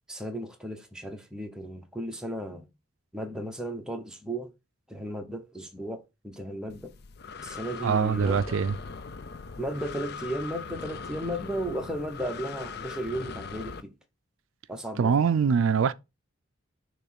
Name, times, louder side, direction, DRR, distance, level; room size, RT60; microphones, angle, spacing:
voice 1, 0.1-2.7 3.1-4.5 4.9-6.9 7.4-8.4 9.6-13.9 14.7-15.1, right 1 dB, 5° right, 1.0 m, -35 dB
Breathing, 6.7-13.8, left 5 dB, 50° left, 0.5 m, -40 dB
voice 2, 7.8-8.7 15.0-15.9, right 6 dB, 70° right, 0.4 m, -23 dB
6.8 x 3.1 x 5.8 m
head